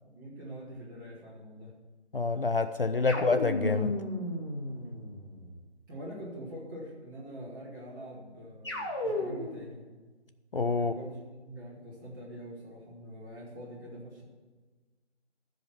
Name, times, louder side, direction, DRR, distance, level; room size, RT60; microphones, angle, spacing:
voice 1, 0.0-1.7 3.1-3.3 5.9-9.8 10.8-11.2 11.4-14.2, equal, 20° right, -8 dB, 2.8 m, -44 dB
voice 2, 2.1-4.0 10.5-10.9, left 4 dB, 55° left, 9 dB, 0.5 m, -27 dB
sound 1, 3.1-5.6 8.6-9.7, left 1 dB, 25° left, 1.1 m, -34 dB
14.0 x 5.1 x 7.4 m, 1.3 s
figure-of-eight pair, 165°, 34 cm